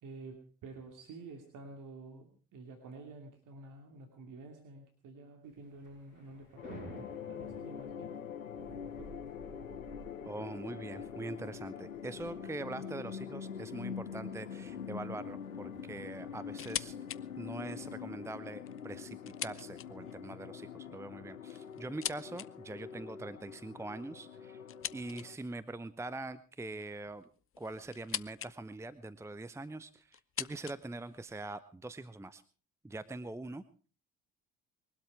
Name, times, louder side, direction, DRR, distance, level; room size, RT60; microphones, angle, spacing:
voice 1, 0.0-8.2 9.0-9.2, right 3 dB, 50° right, 4 dB, 2.9 m, -50 dB
Thunder / Rain, 5.5-18.2, right 2 dB, 85° right, 7.6 m, -56 dB
sound 1, 6.6-25.4, left 7 dB, 85° left, 0.8 m, -44 dB
voice 2, 10.3-17.0 17.4-24.6 24.9-27.2 27.6-32.4 32.8-33.6, right 2 dB, 5° right, 14 dB, 0.9 m, -43 dB
sound 2, 16.5-17.2 17.6-17.7 18.5-20.2 21.1-22.5 24.7-25.5 26.7-28.5 28.8-29.4 30.1-31.5, left 10 dB, 35° left, 0.8 m, -42 dB
22.0 x 12.5 x 4.8 m, 0.40 s
figure-of-eight pair, 50°, 39 cm